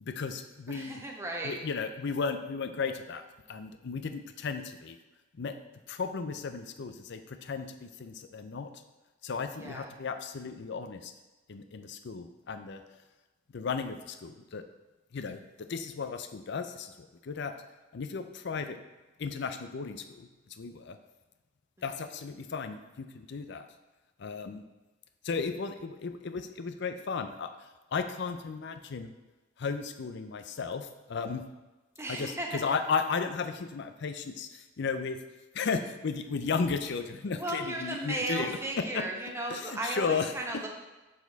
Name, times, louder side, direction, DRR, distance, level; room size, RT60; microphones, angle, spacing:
voice 1, 0.0-1.0 1.4-5.0 5.3-5.6 5.9-8.7 9.2-11.1 11.5-12.8 13.5-14.6 15.1-17.6 17.9-18.8 19.2-21.0 21.8-23.6 24.2-24.6 25.2-29.1 29.6-31.4 32.1-35.2 35.5-39.0 39.5-40.3, left 5 dB, 60° left, 8 dB, 0.5 m, -35 dB
voice 2, 0.7-1.6 9.5-9.9 21.8-21.9 32.0-32.7 37.4-40.7, right 2 dB, 15° right, 0 dB, 0.8 m, -35 dB
7.3 x 4.3 x 4.0 m, 1.2 s
head